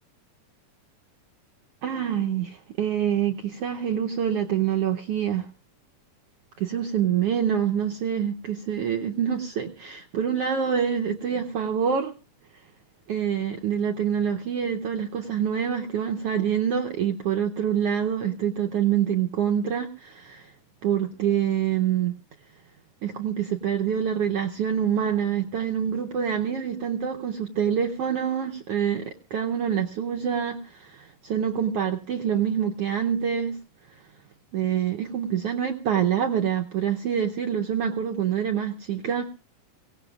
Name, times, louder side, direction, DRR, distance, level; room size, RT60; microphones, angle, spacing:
voice 1, 1.8-5.5 6.6-12.1 13.1-20.5 20.8-22.2 23.0-33.6 34.5-39.3, right 8 dB, 85° right, 4 dB, 1.3 m, -26 dB
24.0 x 17.5 x 2.4 m, 0.33 s
omnidirectional pair, 3.9 m